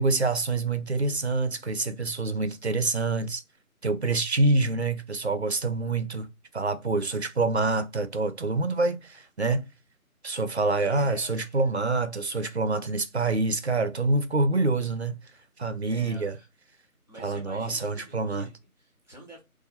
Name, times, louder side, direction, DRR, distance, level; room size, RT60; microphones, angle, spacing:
voice 1, 0.0-3.4 3.8-6.3 6.5-9.7 10.2-15.2 15.6-16.3 17.2-18.5, right 3 dB, 50° right, 0.5 m, -26 dB
voice 2, 10.8-11.7 15.8-16.5 17.1-19.4, right 1 dB, 10° left, 1.2 m, -48 dB
4.0 x 2.6 x 2.5 m
figure-of-eight pair, 165°, 44 cm